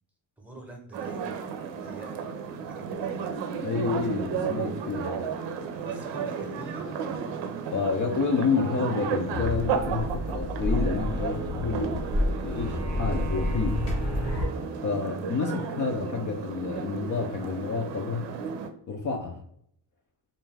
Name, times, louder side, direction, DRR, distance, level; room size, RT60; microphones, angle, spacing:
voice 1, 0.4-1.3 1.8-2.3 2.7-3.1 5.8-7.2, right 1 dB, 5° right, 1 dB, 0.7 m, -46 dB
sound 1, 0.9-18.7, right 6 dB, 85° right, 0.5 m, -34 dB
voice 2, 3.6-5.2 7.7-12.1 12.4-13.8 14.8-18.3 18.9-19.4, left 4 dB, 45° left, 2 dB, 0.5 m, -29 dB
sound 2, 9.3-14.5, left 1 dB, 70° left, 1.2 m, -29 dB
Wind instrument woodwind instrument, 10.6-15.5, right 1 dB, 40° right, 0.5 m, -43 dB
2.5 x 2.2 x 3.2 m, 0.69 s
cardioid pair, 75°, 42 cm